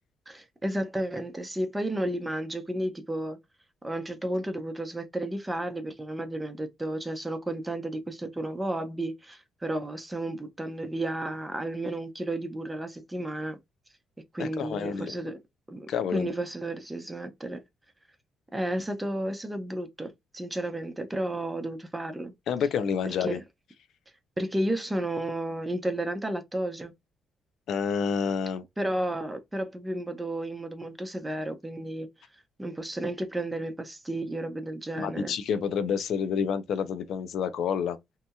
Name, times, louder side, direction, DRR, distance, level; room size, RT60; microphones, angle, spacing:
voice 1, 0.3-3.4 3.8-13.6 14.3-15.4 15.7-17.6 18.5-22.3 23.2-23.4 24.4-26.9 28.8-32.1 32.6-35.4, right 1 dB, 15° right, 0.8 m, -32 dB
voice 2, 14.4-15.2 15.9-16.3 22.5-23.4 27.7-28.6 35.0-38.0, left 7 dB, 70° left, 0.5 m, -29 dB
2.8 x 2.6 x 2.2 m
cardioid pair, 90°, 0 cm